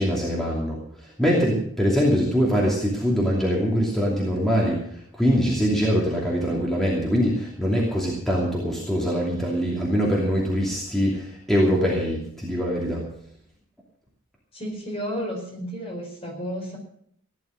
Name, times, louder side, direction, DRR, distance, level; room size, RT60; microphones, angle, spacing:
voice 1, 0.0-13.0, equal, ahead, -4 dB, 2.7 m, -23 dB
voice 2, 14.5-16.8, equal, 25° left, 1 dB, 4.5 m, -32 dB
16.0 x 11.0 x 6.4 m, 0.68 s
head